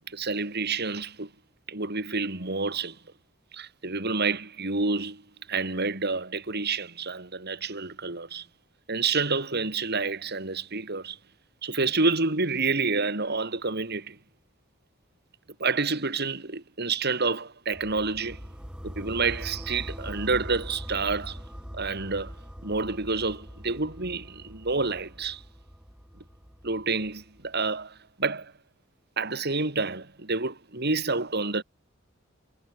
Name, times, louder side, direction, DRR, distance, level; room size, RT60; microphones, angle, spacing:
voice 1, 0.1-1.3 1.7-3.0 3.5-5.2 5.5-8.5 8.9-11.2 11.6-14.2 15.6-18.5 18.8-21.4 21.7-22.3 22.6-25.4 26.6-28.5 29.2-31.6, right 4 dB, 55° right, 3.5 m, -28 dB
sound 1, 17.7-27.7, equal, 5° right, 2.0 m, -42 dB
head